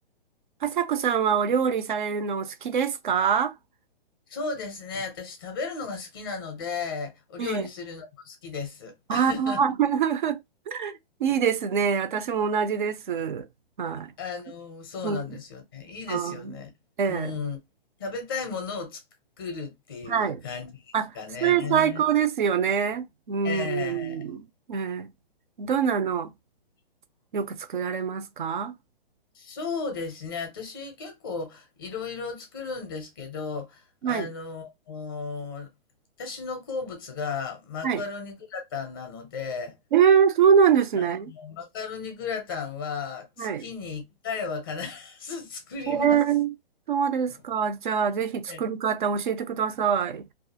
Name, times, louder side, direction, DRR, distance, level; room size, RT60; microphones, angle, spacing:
voice 1, 0.6-3.5 7.4-7.6 9.1-10.4 10.7-13.5 13.8-14.1 15.0-15.2 16.1-16.5 17.0-17.3 20.1-20.4 20.9-21.1 21.4-25.1 25.6-26.3 27.3-28.8 34.0-34.3 37.8-38.0 39.9-41.3 43.4-43.6 45.9-46.5 46.9-50.3, right 7 dB, 55° right, 0.5 m, -24 dB
voice 2, 4.3-9.6 14.2-16.7 17.1-17.6 18.0-19.0 19.4-22.0 23.4-24.2 29.3-35.7 36.2-39.8 41.0-46.2 47.3-47.4 48.5-48.6, left 5 dB, 25° left, 0.6 m, -35 dB
2.4 x 2.3 x 2.7 m
hypercardioid pair, 170°, 30 cm